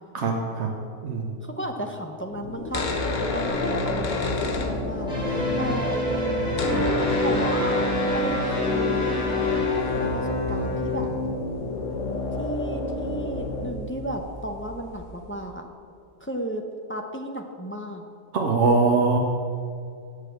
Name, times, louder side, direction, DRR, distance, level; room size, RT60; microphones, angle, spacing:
voice 1, 0.1-0.7 1.0-1.3 18.3-19.2, right 4 dB, 70° right, 0 dB, 1.1 m, -22 dB
voice 2, 1.4-2.9 3.2-5.1 5.6-6.0 7.2-7.9 8.1-9.0 9.7-11.1 12.4-15.7 16.2-16.6 16.9-18.0, right 1 dB, 15° left, 3 dB, 0.4 m, -33 dB
sound 1, 2.2-13.7, left 2 dB, 90° left, 1.3 m, -31 dB
sound 2, 2.6-5.3 5.6-5.7 5.9-15.3, left 4 dB, 45° left, 0.8 m, -30 dB
sound 3, 5.1-10.2, equal, 5° right, 2.8 m, -28 dB
8.1 x 6.6 x 7.7 m, 2.3 s
omnidirectional pair, 1.3 m